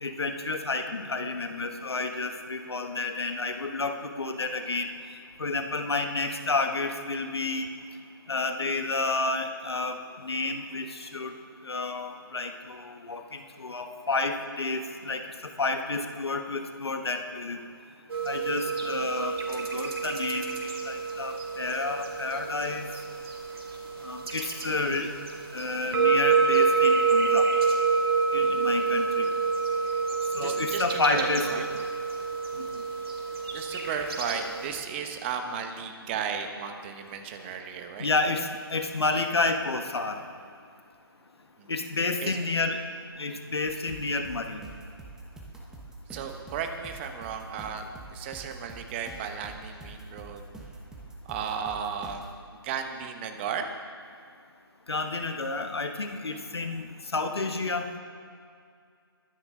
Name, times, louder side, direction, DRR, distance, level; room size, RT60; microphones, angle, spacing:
voice 1, 0.0-4.9 5.4-7.7 8.3-10.0 10.2-11.3 11.6-15.2 15.6-17.6 18.3-20.5 20.8-22.8 24.0-25.1 25.5-27.5 28.3-29.3 30.3-31.5 32.6-32.7 38.0-40.2 41.7-42.8 43.2-44.6 54.9-57.9, left 3 dB, 90° left, 6 dB, 1.3 m, -30 dB
sound 1, 18.1-34.7, right 5 dB, 75° right, 2.5 m, -28 dB
voice 2, 30.4-31.7 32.5-32.7 33.5-38.1 41.6-41.7 42.2-42.4 46.1-50.5 51.2-52.2 52.6-53.7, right 7 dB, 25° right, 6 dB, 1.1 m, -35 dB
sound 2, 43.7-52.3, right 2 dB, 5° right, 1.0 m, -45 dB
22.0 x 9.9 x 3.8 m, 2.3 s
hypercardioid pair, 150°, 13 cm